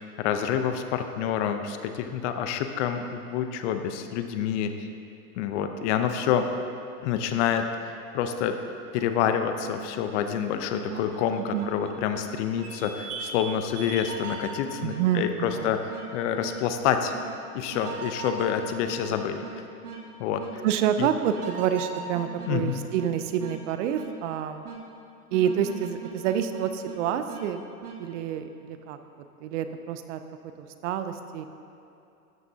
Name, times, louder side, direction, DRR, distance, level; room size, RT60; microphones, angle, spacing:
voice 1, 0.2-4.9 5.4-6.5 7.0-8.6 8.9-17.1 17.5-19.4 20.2-20.6 21.0-21.1 22.5-22.8, left 8 dB, 50° left, 7 dB, 0.8 m, -28 dB
sound 1, 9.0-9.1 9.6-9.8 10.6-12.3 12.6-13.4 13.8-15.6 15.9-16.1 16.4-16.6 17.1-17.3 17.7-19.5 19.8-20.0 20.4-20.5 21.3-23.1 23.4-23.6 23.9-24.1 24.6-24.8 25.3-27.0 27.3-27.4 27.8-28.0, right 5 dB, 85° right, 1.7 m, -38 dB
voice 2, 14.8-15.7 20.6-24.6 25.3-27.7 28.0-29.0 29.4-30.2 30.6-31.5, right 9 dB, 55° right, 9 dB, 0.7 m, -28 dB
12.5 x 9.5 x 2.8 m, 2.7 s
hypercardioid pair, 120°, 44 cm